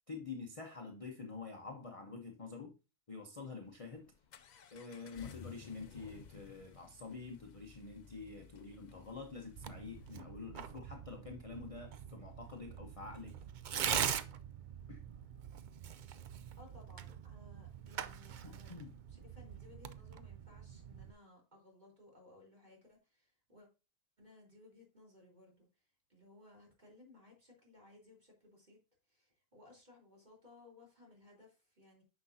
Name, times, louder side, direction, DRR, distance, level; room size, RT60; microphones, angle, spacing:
voice 1, 0.1-2.8 3.1-4.1 4.7-13.3 13.7-14.1 14.9-15.0 18.4-19.0, left 4 dB, 30° left, 0.8 m, -47 dB
Accelerating revving vroom, 3.6-10.2, left 7 dB, 60° left, 0.4 m, -56 dB
Tearing, 9.6-21.1, right 8 dB, 65° right, 0.4 m, -43 dB
voice 2, 16.6-18.7 19.1-23.7 24.2-25.7 26.1-28.8 29.1-32.0, left 2 dB, 35° right, 3.6 m, -61 dB
9.6 x 5.9 x 2.7 m
omnidirectional pair, 1.4 m